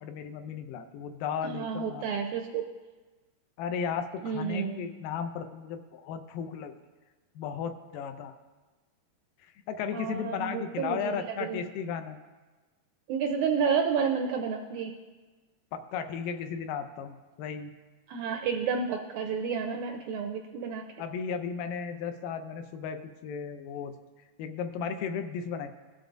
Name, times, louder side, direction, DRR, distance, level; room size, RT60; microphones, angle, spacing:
voice 1, 0.0-2.0 3.6-6.7 7.4-8.4 9.7-12.2 15.7-17.7 21.0-23.9 24.4-25.7, left 7 dB, 85° left, 7 dB, 2.3 m, -35 dB
voice 2, 1.4-2.6 4.2-4.8 9.9-11.6 13.1-14.9 18.1-20.8, right 6 dB, 80° right, 3 dB, 1.7 m, -30 dB
17.5 x 7.0 x 2.6 m, 1.3 s
omnidirectional pair, 3.8 m